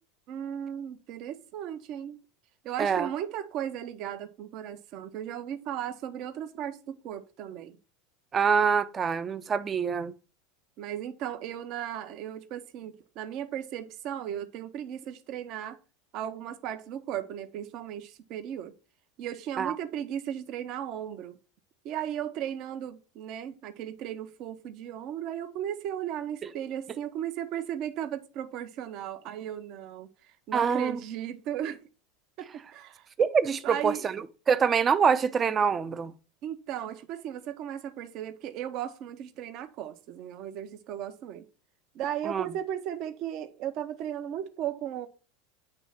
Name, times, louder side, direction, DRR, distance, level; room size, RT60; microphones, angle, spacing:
voice 1, 0.3-2.2 2.6-7.8 10.8-15.8 16.1-18.7 19.2-21.4 21.8-30.1 30.5-31.8 32.4-33.1 33.6-34.1 36.4-41.4 41.9-45.1, right 10 dB, 55° right, 1.0 m, -36 dB
voice 2, 2.8-3.1 8.3-10.1 19.6-19.7 26.4-26.5 30.5-31.0 33.2-36.1 42.2-42.5, right 6 dB, 25° right, 0.7 m, -25 dB
8.9 x 3.2 x 5.8 m
supercardioid pair, 110°, 0 cm